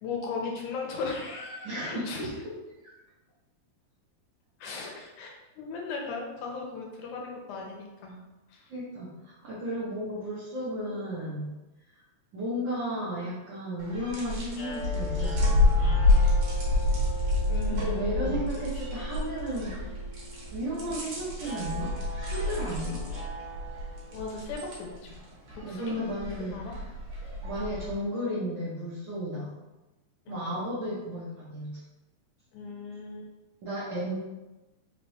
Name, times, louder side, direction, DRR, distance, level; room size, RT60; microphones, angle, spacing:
voice 1, 0.0-2.3 4.6-8.2 8.5-8.7 17.5-18.4 24.1-25.2 25.5-25.9 26.5-26.7 30.3-30.6 32.5-33.3 33.9-34.0, left 4 dB, 80° left, 0 dB, 2.3 m, -37 dB
voice 2, 1.6-2.5 2.8-2.9 8.7-11.5 11.9-12.0 12.3-16.2 17.7-19.9 20.5-23.1 25.7-26.8 27.4-29.5 30.3-31.7 33.6-34.1, equal, 80° right, -9 dB, 1.0 m, -34 dB
sound 1, 13.8-27.9, left 2 dB, 60° right, 1.8 m, -28 dB
sound 2, 14.5-24.7, right 1 dB, 55° left, 1.6 m, -42 dB
5.0 x 3.1 x 3.0 m, 1.1 s
omnidirectional pair, 3.5 m